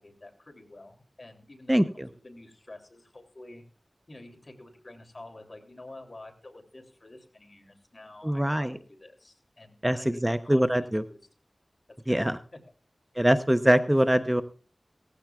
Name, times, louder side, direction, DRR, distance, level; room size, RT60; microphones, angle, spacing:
voice 1, 0.0-3.6 4.1-10.6 11.1-11.2 11.9-12.6, left 2 dB, 50° left, 3 dB, 2.9 m, -48 dB
voice 2, 1.7-2.1 8.2-8.7 9.8-11.0 12.1-12.4 13.2-14.4, equal, 10° right, 10 dB, 0.6 m, -23 dB
18.0 x 15.0 x 2.3 m, 0.38 s
wide cardioid pair, 45°, 0 cm